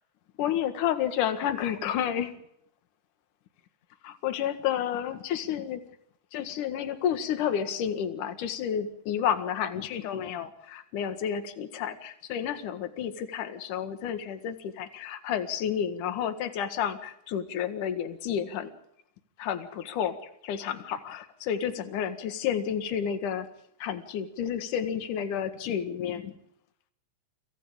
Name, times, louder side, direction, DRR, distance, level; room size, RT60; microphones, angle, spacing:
voice 1, 0.4-2.3 4.0-5.8 6.3-18.7 19.4-23.5 23.8-26.3, left 9 dB, 60° left, 8 dB, 2.8 m, -31 dB
29.0 x 26.0 x 3.8 m, 0.73 s
omnidirectional pair, 4.8 m